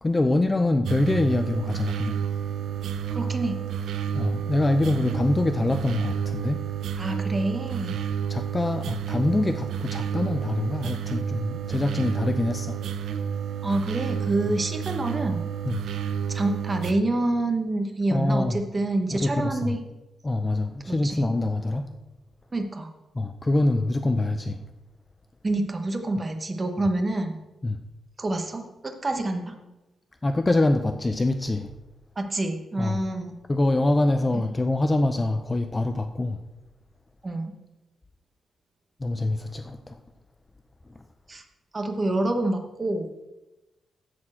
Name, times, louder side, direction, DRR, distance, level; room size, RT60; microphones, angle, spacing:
voice 1, 0.0-2.2 4.1-6.6 8.3-12.8 15.6-15.8 18.1-18.6 19.1-19.8 20.2-21.9 23.2-24.6 27.6-27.8 30.2-31.7 32.8-33.0 33.5-36.4 39.0-40.0, left 2 dB, 15° left, 8 dB, 0.4 m, -25 dB
sound 1, 0.8-16.9, right 8 dB, 85° right, 0.5 m, -30 dB
voice 2, 3.1-3.6 6.9-8.0 13.6-15.4 16.3-19.8 20.9-21.2 22.5-22.9 25.4-27.4 28.2-29.5 32.2-33.4 34.3-34.5 37.2-37.6 41.3-41.4 41.7-43.1, right 2 dB, 20° right, 5 dB, 1.0 m, -27 dB
11.0 x 4.4 x 7.4 m, 1.0 s
wide cardioid pair, 160°, 0 cm